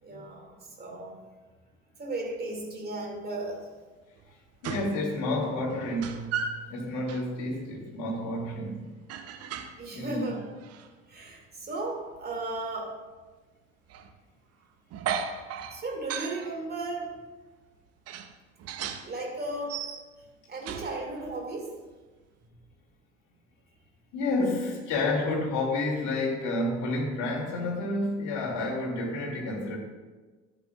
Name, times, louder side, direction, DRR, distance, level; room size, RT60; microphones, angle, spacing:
voice 1, 0.0-1.1 2.0-3.7 9.8-10.5 11.1-13.0 15.7-17.1 19.0-19.8 20.5-21.7 22.4-22.6, right 2 dB, 25° right, 2.5 m, -35 dB
sound 1, 4.2-4.3 4.6-5.0 5.3-6.7 7.1-7.3 9.1-9.9 10.3-10.9 12.3-12.4 13.9-14.1 14.9-16.5 17.2-17.3 18.1-19.1 19.5-20.3 20.6-21.4, right 7 dB, 45° right, 0.8 m, -36 dB
voice 2, 4.6-8.9 9.9-10.2 24.1-29.8, left 2 dB, 55° left, 2.8 m, -30 dB
13.5 x 8.2 x 2.5 m
figure-of-eight pair, 60°, 36 cm